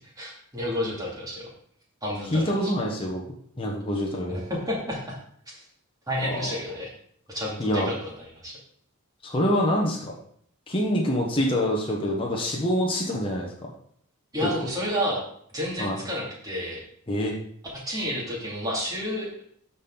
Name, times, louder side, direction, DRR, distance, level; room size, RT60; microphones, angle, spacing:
voice 1, 0.2-1.5 2.0-2.7 4.3-5.2 5.5-5.6 6.1-6.9 7.3-8.6 14.3-15.2 15.5-16.8 17.6-19.3, equal, 15° right, -4 dB, 2.5 m, -30 dB
voice 2, 2.3-3.2 3.6-4.4 6.2-6.5 7.6-7.9 9.2-10.1 10.7-13.7 14.4-14.5 15.8-16.0 17.1-17.3, equal, 25° left, -2 dB, 1.0 m, -26 dB
12.5 x 4.2 x 3.8 m, 0.65 s
head